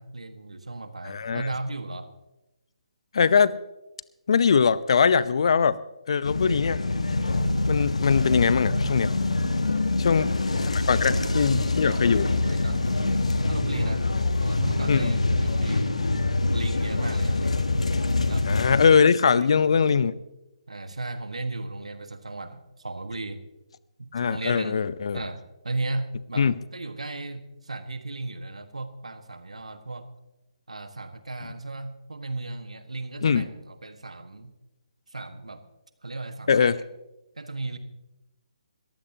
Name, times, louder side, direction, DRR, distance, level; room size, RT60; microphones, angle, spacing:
voice 1, 0.0-2.1 9.9-10.4 10.8-14.1 14.4-16.0 16.5-17.7 18.3-18.5 19.3-19.8 20.7-23.4 24.0-24.8 25.1-30.1 30.7-34.5 35.1-35.6 36.0-36.8 37.3-37.8, right 2 dB, 80° right, 9 dB, 1.5 m, -36 dB
voice 2, 1.0-1.5 3.1-3.6 4.3-5.8 6.1-6.8 7.7-9.1 10.0-10.3 10.6-12.3 14.9-15.1 18.5-20.1 24.1-25.2 26.4-26.6 33.2-33.4 36.5-36.8, left 6 dB, 55° left, 18 dB, 0.7 m, -21 dB
sound 1, 6.2-18.9, left 2 dB, 80° left, 1.2 m, -25 dB
21.5 x 15.0 x 2.9 m, 0.97 s
figure-of-eight pair, 145°, 3 cm